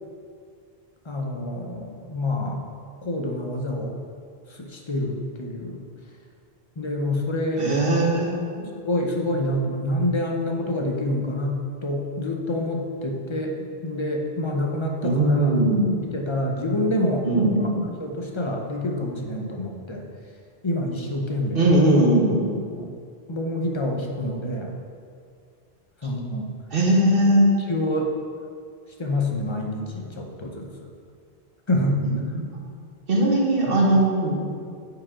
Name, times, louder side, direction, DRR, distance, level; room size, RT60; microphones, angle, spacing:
voice 1, 1.1-2.6 3.0-4.0 4.6-5.8 6.8-7.7 8.8-13.5 13.8-15.5 16.0-17.3 17.6-17.7 18.0-20.0 20.6-21.7 22.7-22.9 23.3-24.7 26.0-26.5 27.7-28.1 29.0-30.9 31.7-32.0 33.7-33.8, left 1 dB, 30° left, 1 dB, 0.8 m, -27 dB
voice 2, 7.6-8.7 15.0-16.0 17.2-17.9 21.5-22.5 26.7-27.5 32.0-32.4 33.1-34.4, right 1 dB, 60° right, -3 dB, 1.5 m, -20 dB
9.2 x 5.0 x 3.8 m, 2.2 s
omnidirectional pair, 1.1 m